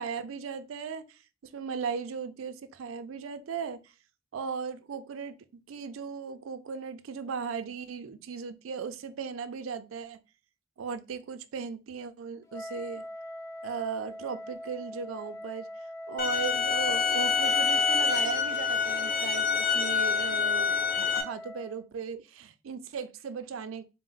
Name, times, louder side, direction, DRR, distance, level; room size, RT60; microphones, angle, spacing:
voice 1, 0.0-3.8 4.3-5.3 5.7-10.2 10.8-13.0 13.6-15.7 16.1-23.8, right 6 dB, 85° right, 0.4 m, -37 dB
Wind instrument woodwind instrument, 12.5-21.9, left 1 dB, 15° left, 0.3 m, -41 dB
sound 1, 16.2-21.2, left 6 dB, 45° left, 0.8 m, -26 dB
4.1 x 2.0 x 3.8 m
head